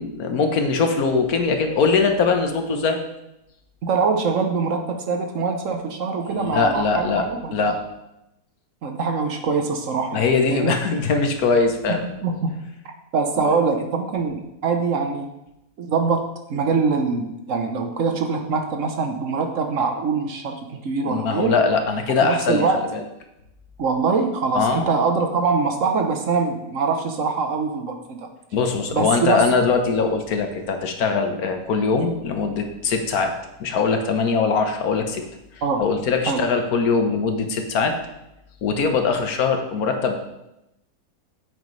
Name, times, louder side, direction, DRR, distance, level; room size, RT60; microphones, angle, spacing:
voice 1, 0.0-3.0 6.2-7.2 7.5-7.8 10.1-12.1 21.1-23.0 24.5-24.9 28.5-33.3 33.6-35.2 35.8-38.0 38.6-40.2, left 4 dB, 70° left, 5 dB, 1.4 m, -21 dB
voice 2, 3.8-7.5 8.8-10.7 11.9-12.5 13.1-15.3 15.8-21.5 22.2-22.8 23.8-28.2 28.9-29.4 35.6-35.8 36.3-36.4, right 4 dB, 60° right, 5 dB, 1.1 m, -23 dB
9.1 x 8.0 x 3.2 m, 0.89 s
omnidirectional pair, 1.7 m